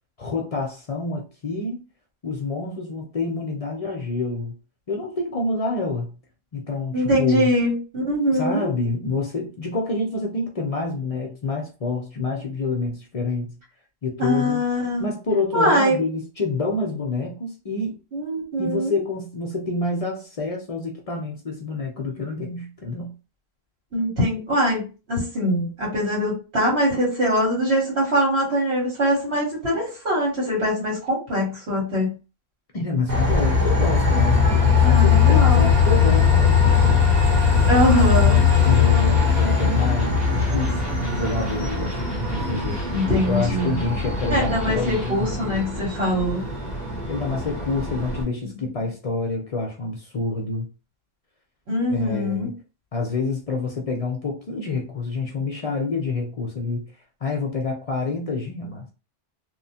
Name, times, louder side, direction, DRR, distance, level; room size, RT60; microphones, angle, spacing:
voice 1, 0.2-1.8 2.2-4.6 4.9-6.1 6.5-7.5 8.3-13.6 14.0-14.6 15.0-18.0 18.6-23.1 32.7-37.1 38.6-42.8 43.3-45.5 47.1-50.7 51.9-52.5 52.9-56.9 57.2-58.9, left 3 dB, 45° left, 0.5 m, -27 dB
voice 2, 6.9-8.7 14.2-15.1 15.5-16.0 18.1-19.0 23.9-32.1 34.8-35.7 37.7-38.4 42.9-43.8 44.3-46.5 51.7-52.5, equal, 90° right, 1.7 m, -22 dB
Train, 33.1-48.2, left 6 dB, 45° right, 0.9 m, -20 dB
Electric guitar, 38.1-45.4, left 1 dB, 20° left, 0.8 m, -34 dB
2.9 x 2.1 x 2.7 m
omnidirectional pair, 1.1 m